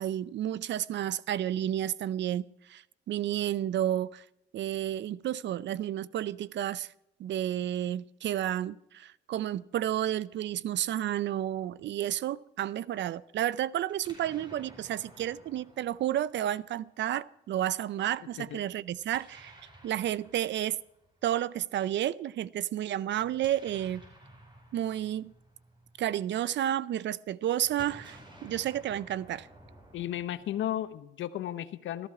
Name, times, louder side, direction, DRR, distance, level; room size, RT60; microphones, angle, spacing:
voice 1, 0.0-4.2 4.5-6.9 7.2-19.5 19.8-20.8 21.2-24.0 24.7-25.3 26.0-29.5, right 11 dB, 65° right, 0.5 m, -31 dB
Explosion, 13.9-16.9 19.0-21.2 23.1-26.5 27.6-31.0, right 1 dB, 25° right, 4.9 m, -54 dB
voice 2, 29.9-32.1, left 12 dB, 75° left, 0.9 m, -34 dB
14.5 x 13.5 x 4.8 m
cardioid pair, 90°, 20 cm